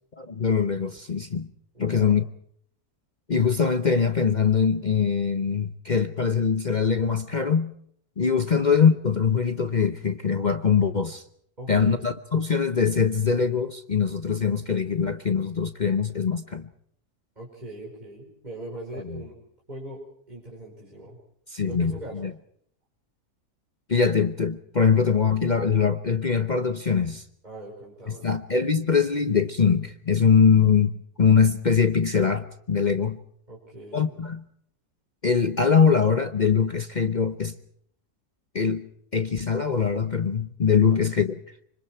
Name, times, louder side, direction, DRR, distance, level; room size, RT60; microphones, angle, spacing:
voice 1, 0.2-1.5 1.8-2.2 3.3-7.7 8.2-11.2 11.7-16.7 19.1-19.2 21.5-22.3 23.9-27.2 28.2-33.2 33.9-34.4 35.2-37.5 38.5-41.4, left 6 dB, 35° left, 0.8 m, -22 dB
voice 2, 1.7-2.1 8.5-8.6 11.6-12.1 17.4-19.3 19.7-20.0 20.3-21.2 21.6-22.2 27.4-28.2 33.5-34.1 40.9-41.0, right 1 dB, 25° right, 5.4 m, -40 dB
26.0 x 25.0 x 4.5 m
omnidirectional pair, 1.7 m